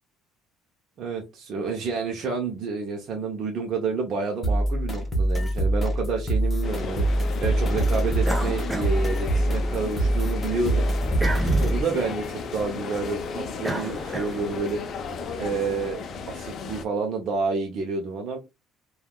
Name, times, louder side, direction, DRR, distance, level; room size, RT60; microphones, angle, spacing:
voice 1, 1.0-10.9 11.4-14.8 15.4-18.4, right 4 dB, 50° right, 1 dB, 0.6 m, -29 dB
sound 1, 4.4-11.8, right 1 dB, 20° left, 1.0 m, -24 dB
sound 2, 6.6-16.8, left 5 dB, 45° left, 0.5 m, -35 dB
sound 3, 8.2-9.8 10.2-14.8, right 1 dB, 10° right, 0.7 m, -32 dB
3.3 x 2.3 x 2.2 m, 0.24 s
cardioid pair, 120°, 0 cm